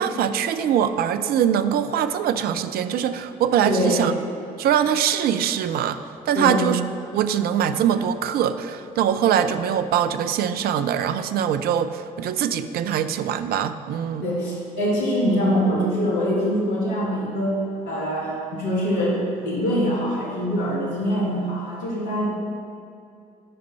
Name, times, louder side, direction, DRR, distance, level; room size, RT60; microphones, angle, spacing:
voice 1, 0.0-4.1 4.6-6.0 6.3-6.8 7.1-14.2, right 9 dB, 50° right, 10 dB, 0.5 m, -22 dB
voice 2, 3.7-4.1 6.3-6.7 14.2-17.6 17.8-22.3, equal, 70° left, -5 dB, 2.0 m, -24 dB
9.9 x 5.1 x 4.4 m, 2.5 s
figure-of-eight pair, 45°, 20 cm